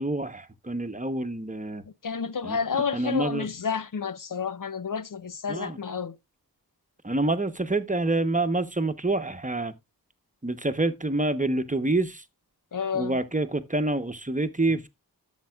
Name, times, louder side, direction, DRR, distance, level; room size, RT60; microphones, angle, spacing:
voice 1, 0.0-1.8 2.4-2.6 2.9-3.5 5.5-5.8 7.0-9.7 10.4-12.2 12.9-14.9, right 2 dB, 20° right, 1.0 m, -27 dB
voice 2, 2.0-6.2 12.7-13.2, left 6 dB, 55° left, 0.7 m, -30 dB
11.5 x 7.4 x 2.4 m
cardioid pair, 40°, 39 cm